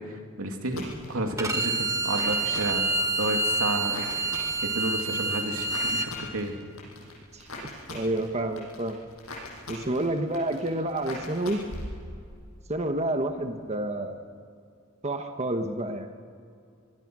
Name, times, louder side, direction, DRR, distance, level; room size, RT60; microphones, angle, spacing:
voice 1, 0.0-4.0 4.7-6.5, right 1 dB, 90° right, 3 dB, 2.7 m, -31 dB
sound 1, 0.6-12.6 12.8-13.4, left 2 dB, 85° left, 7.5 m, -43 dB
Bowed string instrument, 1.4-6.1, right 2 dB, 15° right, 1.7 m, -27 dB
voice 2, 7.3-9.0 9.7-11.6 12.7-14.2 15.0-16.1, right 1 dB, 30° right, 5 dB, 1.3 m, -29 dB
25.0 x 21.0 x 6.2 m, 2.3 s
head